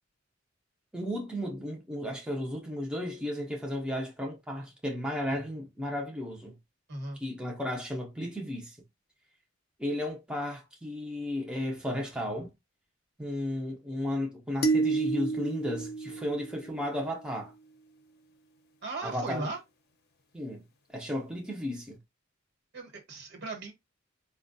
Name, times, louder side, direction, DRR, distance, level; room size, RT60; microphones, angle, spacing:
voice 1, 0.9-6.6 7.2-8.8 9.8-12.5 13.2-17.5 19.0-19.5 20.3-20.6 20.9-22.0, left 1 dB, 5° right, 0.5 m, -34 dB
sound 1, 14.6-17.0, right 3 dB, 50° left, 0.6 m, -30 dB
voice 2, 18.8-19.6 22.7-23.7, right 2 dB, 55° right, 1.2 m, -37 dB
4.4 x 2.2 x 2.6 m
head